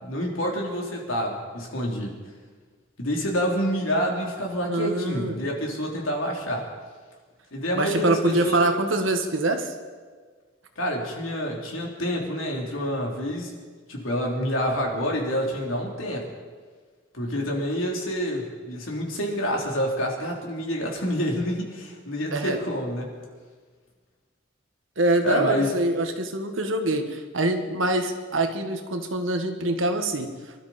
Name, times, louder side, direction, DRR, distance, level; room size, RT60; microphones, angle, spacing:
voice 1, 0.0-2.1 3.0-6.7 7.5-8.6 10.7-13.5 13.9-16.3 17.1-23.1 25.2-25.7, equal, 80° left, 0 dB, 3.2 m, -28 dB
voice 2, 4.7-5.4 7.7-9.7 22.3-22.6 25.0-30.3, right 2 dB, 70° right, 6 dB, 1.6 m, -24 dB
25.0 x 12.5 x 4.3 m, 1.5 s
head